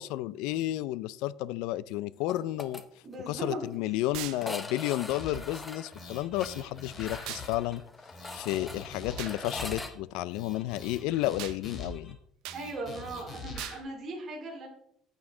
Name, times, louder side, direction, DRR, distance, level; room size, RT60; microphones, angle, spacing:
voice 1, 0.0-2.8 3.3-7.8 8.3-12.2, left 15 dB, 80° left, 19 dB, 0.4 m, -32 dB
sound 1, 2.3-2.8 3.1-3.2 3.5-3.6 4.3-9.9, left 2 dB, 10° left, 0.8 m, -42 dB
voice 2, 3.0-3.7 12.5-14.7, right 2 dB, 30° right, -1 dB, 3.0 m, -38 dB
sound 2, 4.1-4.4 7.3-7.5 9.2-9.4 11.4-11.6 12.4-12.6 13.6-13.8, right 14 dB, 75° right, 0.8 m, -39 dB
sound 3, 5.1-5.6 5.9-7.8 8.1-9.9 10.3-12.1 12.5-13.8, left 3 dB, 30° left, 2.9 m, -44 dB
9.5 x 8.3 x 3.8 m, 0.73 s
cardioid pair, 150°, 0 cm